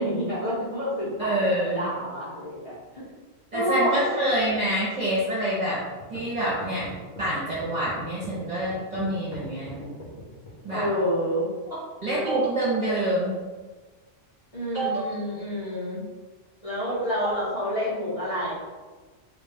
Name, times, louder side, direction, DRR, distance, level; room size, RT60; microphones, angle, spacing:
voice 1, 0.0-3.0 3.5-4.2 10.7-11.5 14.5-16.0 16.6-18.5, equal, 30° left, -8 dB, 1.0 m, -28 dB
voice 2, 1.2-1.8 3.5-5.8 6.1-6.9 7.2-9.9 10.6-10.9 12.0-13.4 14.7-14.9, right 1 dB, 35° right, -9 dB, 1.0 m, -26 dB
sound 1, 6.0-10.6, left 2 dB, 55° left, 1.1 m, -41 dB
3.3 x 2.5 x 3.5 m, 1.3 s
omnidirectional pair, 1.3 m